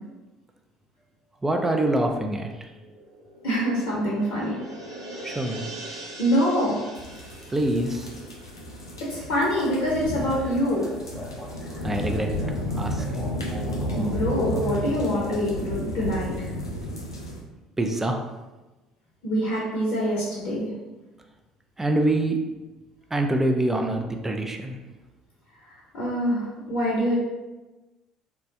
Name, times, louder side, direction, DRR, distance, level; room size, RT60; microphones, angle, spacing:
voice 1, 1.4-2.5 5.2-5.6 7.5-8.1 11.8-12.3 12.8-13.3 17.8-18.2 21.8-22.4 23.1-24.8, right 1 dB, 15° right, 3 dB, 0.4 m, -25 dB
sound 1, 2.7-9.7 10.0-10.1, right 1 dB, 85° right, 0.5 m, -42 dB
voice 2, 3.4-4.6 6.2-6.8 9.0-10.9 13.9-16.5 19.2-20.7 25.9-27.1, equal, 60° left, -5 dB, 0.7 m, -25 dB
sound 2, 7.0-17.4, equal, 90° left, 0.3 m, -32 dB
sound 3, 10.3-15.4, left 1 dB, 15° left, 0.9 m, -42 dB
3.1 x 2.2 x 2.7 m, 1.1 s
figure-of-eight pair, 55°, 2 cm